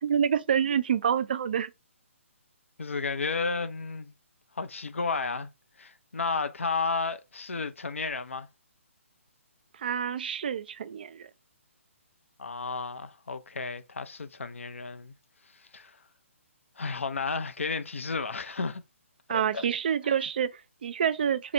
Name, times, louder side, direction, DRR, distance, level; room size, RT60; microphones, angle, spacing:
voice 1, 0.0-1.7 9.8-11.3 19.3-21.5, right 8 dB, 45° right, 0.3 m, -27 dB
voice 2, 2.8-4.1 4.6-5.5 5.8-8.5 12.4-15.1 15.7-16.0 16.8-18.8 19.3-19.7, left 4 dB, 65° left, 0.5 m, -32 dB
3.2 x 2.9 x 3.8 m
figure-of-eight pair, 135°, 7 cm